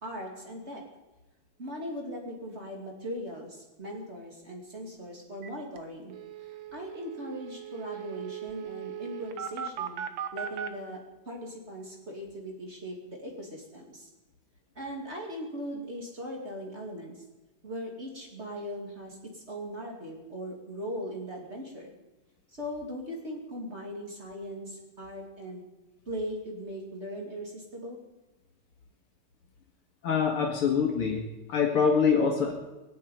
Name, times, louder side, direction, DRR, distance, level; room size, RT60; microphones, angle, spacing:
voice 1, 0.0-0.8 1.6-6.1 6.4-10.0 10.3-14.1 14.7-17.2 17.6-21.9 22.5-25.7 26.1-28.0, equal, 30° right, 0 dB, 2.9 m, -39 dB
sound 1, 5.4-5.5 5.8-5.9 6.1-10.7, right 9 dB, 65° right, 1.8 m, -38 dB
voice 2, 30.0-31.2 31.5-32.5, left 6 dB, 85° left, 0 dB, 2.7 m, -24 dB
20.5 x 7.6 x 9.3 m, 1.1 s
omnidirectional pair, 2.4 m